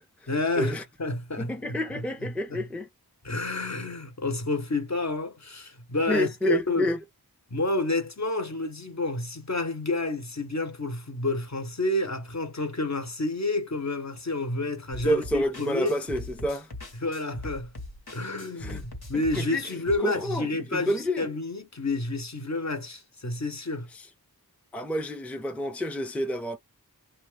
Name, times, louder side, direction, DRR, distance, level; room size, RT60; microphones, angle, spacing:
voice 1, 0.3-1.8 2.2-2.6 3.2-6.9 7.5-15.9 17.0-17.7 18.1-23.9, left 2 dB, 45° left, 0.9 m, -29 dB
voice 2, 1.4-2.9 6.1-7.0 15.0-16.7 18.6-18.8 19.1-19.6 20.0-21.3 24.7-26.6, equal, 5° left, 0.5 m, -29 dB
sound 1, 14.9-20.0, left 1 dB, 75° left, 1.2 m, -40 dB
2.7 x 2.3 x 3.2 m
wide cardioid pair, 50°, 37 cm